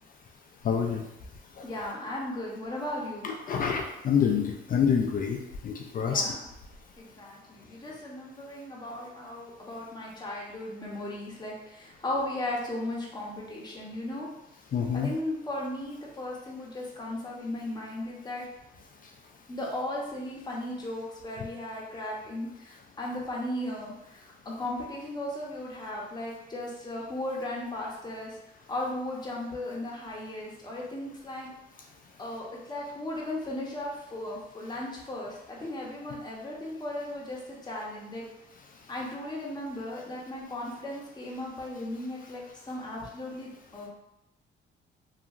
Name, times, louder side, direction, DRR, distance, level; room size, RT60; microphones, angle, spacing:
voice 1, 0.6-1.0 1.6-1.7 3.2-5.4 5.6-6.3 14.7-15.1, left 7 dB, 45° left, 1 dB, 0.4 m, -27 dB
voice 2, 1.6-3.3 6.0-6.4 7.0-14.3 14.9-18.5 19.5-28.4 28.7-31.5 32.2-38.2 38.9-43.9, left 1 dB, 20° left, -3 dB, 0.8 m, -36 dB
2.9 x 2.5 x 2.4 m, 0.87 s
cardioid pair, 90°, 20 cm